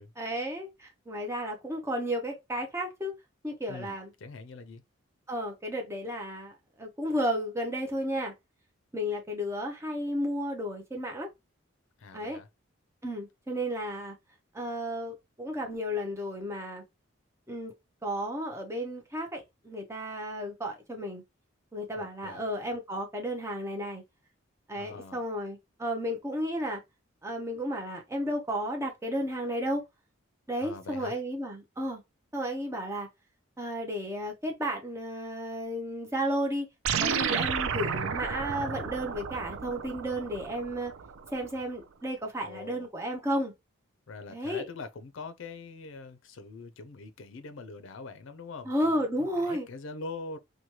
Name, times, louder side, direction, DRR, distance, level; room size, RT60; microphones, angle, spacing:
voice 1, 0.0-3.2 3.4-4.1 5.3-8.3 8.9-11.3 12.1-12.4 13.0-14.1 14.5-16.8 17.5-17.7 18.0-21.2 21.7-24.0 24.7-26.8 27.2-29.8 30.5-32.0 32.3-33.1 33.6-36.7 37.0-40.9 41.3-43.5 44.3-44.7 48.7-49.7, equal, 15° right, 0.6 m, -33 dB
voice 2, 3.7-4.8 12.0-12.5 21.9-22.4 24.7-25.2 30.6-31.2 42.4-42.9 44.1-50.4, left 3 dB, 70° left, 0.4 m, -43 dB
sound 1, 36.8-41.5, right 6 dB, 80° right, 0.4 m, -32 dB
3.0 x 2.2 x 2.8 m
head